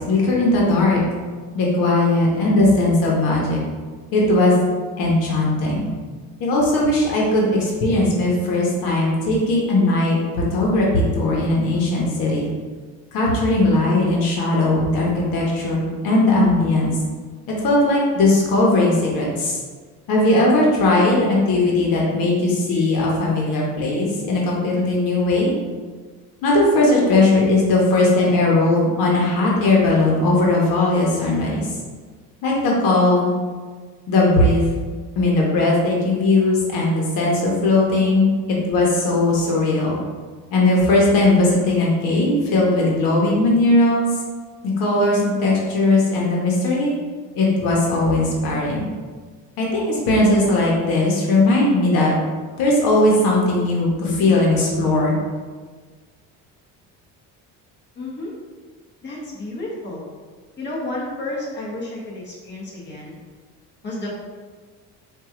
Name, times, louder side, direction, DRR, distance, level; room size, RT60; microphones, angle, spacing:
voice 1, 0.1-1.0 1.5-3.6 4.1-4.5 5.0-5.9 6.4-12.5 13.1-16.9 17.5-19.6 20.1-25.5 26.4-31.7 32.4-33.3 34.1-34.6 35.2-38.3 38.7-40.0 40.5-44.1 44.6-46.9 47.3-48.8 49.6-52.1 52.6-55.2, left 2 dB, 80° left, -3 dB, 1.1 m, -18 dB
voice 2, 57.9-58.3 59.0-60.1 60.6-63.2 63.8-64.1, left 2 dB, 30° left, -5 dB, 1.3 m, -31 dB
4.6 x 2.6 x 3.7 m, 1.5 s
cardioid pair, 125°, 34 cm